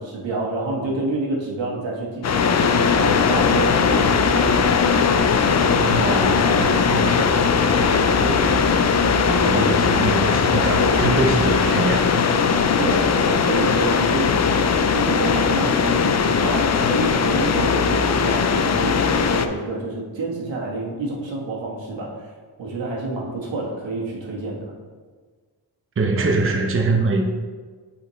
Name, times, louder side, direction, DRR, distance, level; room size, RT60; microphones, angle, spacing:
voice 1, 0.0-4.5 12.8-22.3 22.6-24.7, right 2 dB, 90° right, -3 dB, 1.5 m, -28 dB
sound 1, 2.2-19.5, left 5 dB, 40° left, 0.4 m, -19 dB
sound 2, 3.2-11.6, right 1 dB, 65° right, 1.5 m, -36 dB
voice 2, 5.8-8.8 9.3-12.2 26.0-27.3, right 3 dB, 30° right, 2 dB, 0.7 m, -24 dB
8.5 x 4.2 x 3.1 m, 1.5 s
wide cardioid pair, 120°, 44 cm